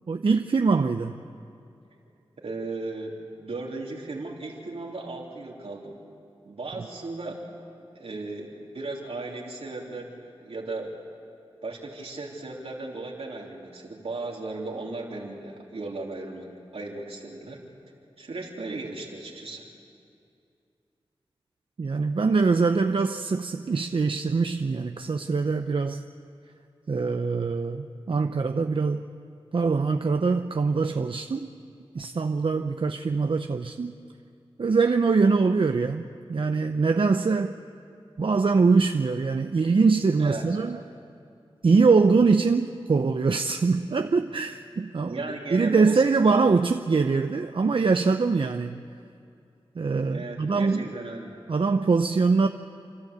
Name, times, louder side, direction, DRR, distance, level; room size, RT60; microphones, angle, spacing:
voice 1, 0.1-1.2 21.8-26.0 26.9-29.0 29.5-31.5 31.9-33.9 34.6-37.5 38.2-40.8 41.6-45.2 45.5-48.8 49.8-50.9 51.5-52.5, right 4 dB, 60° right, 7 dB, 0.7 m, -23 dB
voice 2, 2.4-5.9 6.4-7.4 7.9-11.0 11.6-17.6 18.2-19.7 40.2-40.5 45.0-46.6 50.1-51.3, right 3 dB, 80° right, -1 dB, 3.3 m, -36 dB
29.5 x 13.0 x 8.2 m, 2.5 s
wide cardioid pair, 60°, 10 cm